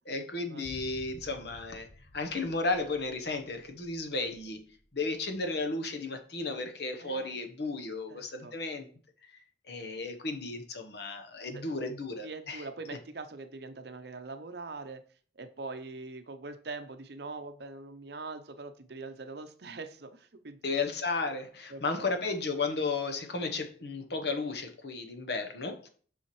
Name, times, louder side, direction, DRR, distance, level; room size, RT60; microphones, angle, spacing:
voice 1, 0.1-1.9 2.1-4.6 4.9-8.9 9.7-12.6 20.6-25.9, left 3 dB, 60° left, 1.0 m, -34 dB
sound 1, 0.6-4.9 5.1-5.2, equal, 35° left, 0.9 m, -52 dB
voice 2, 7.0-7.4 8.1-8.5 11.5-11.7 12.2-15.0 15.4-20.8 21.7-22.1, right 3 dB, 60° right, 0.6 m, -43 dB
7.1 x 5.6 x 3.1 m
head